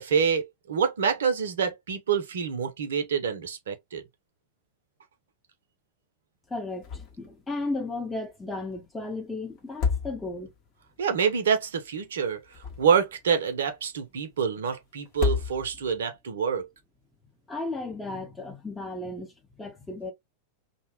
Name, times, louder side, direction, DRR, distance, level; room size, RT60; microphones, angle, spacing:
voice 1, 0.0-4.0 11.0-12.4 12.8-16.7, right 6 dB, 65° right, 0.6 m, -26 dB
voice 2, 6.5-10.5 17.5-20.1, left 2 dB, 10° left, 0.8 m, -34 dB
sound 1, 6.8-7.3 7.6-7.7 9.6-10.6 12.3-13.2 15.0-16.0, left 6 dB, 40° left, 0.8 m, -30 dB
2.7 x 2.1 x 2.9 m
figure-of-eight pair, 90°, 0 cm